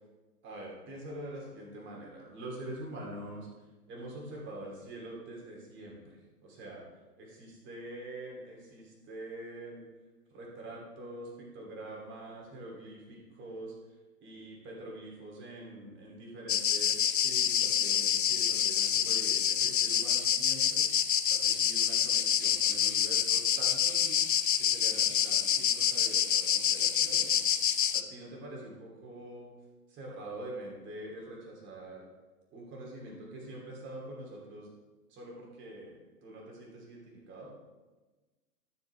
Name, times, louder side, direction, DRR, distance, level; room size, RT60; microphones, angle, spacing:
voice 1, 0.4-3.5 3.9-6.8 7.2-9.9 10.3-13.7 14.2-20.9 21.3-24.2 24.6-27.4 27.9-29.5 29.9-32.0 32.5-34.7 35.1-37.5, right 1 dB, 25° right, -2 dB, 3.0 m, -45 dB
sound 1, 16.5-28.0, left 9 dB, 35° left, 0.4 m, -27 dB
12.5 x 8.2 x 3.4 m, 1.2 s
figure-of-eight pair, 115°, 47 cm